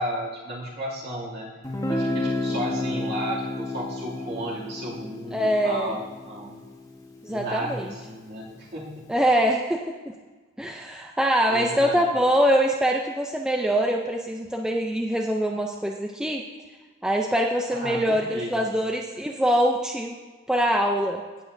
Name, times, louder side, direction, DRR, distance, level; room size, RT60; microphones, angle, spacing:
voice 1, 0.0-1.5 1.9-6.6 7.3-9.0 11.5-12.0 17.7-18.7, right 1 dB, 50° right, -5 dB, 2.5 m, -33 dB
Guitar, 1.6-7.4, left 2 dB, 15° left, 1.2 m, -31 dB
voice 2, 5.3-6.0 7.2-7.9 9.1-9.8 10.6-16.4 17.0-20.2 20.5-21.2, equal, 5° right, 1 dB, 0.4 m, -23 dB
17.0 x 8.0 x 2.6 m, 1.3 s
head